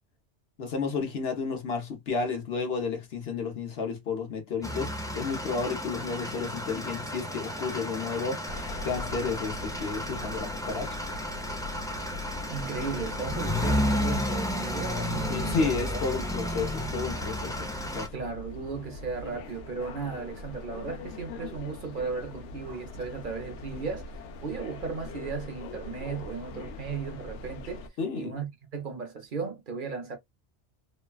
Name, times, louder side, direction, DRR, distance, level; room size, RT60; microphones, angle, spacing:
voice 1, 0.6-8.4 8.8-10.9 15.3-17.7 17.9-18.1 28.0-28.4, left 4 dB, 65° left, 1.1 m, -32 dB
sound 1, 4.6-18.1, left 1 dB, 5° left, 0.4 m, -32 dB
sound 2, 8.5-27.9, left 2 dB, 90° left, 0.9 m, -41 dB
voice 2, 12.5-16.0 18.1-27.9 28.2-30.2, right 5 dB, 50° right, 0.8 m, -36 dB
3.1 x 2.2 x 2.3 m
omnidirectional pair, 1.2 m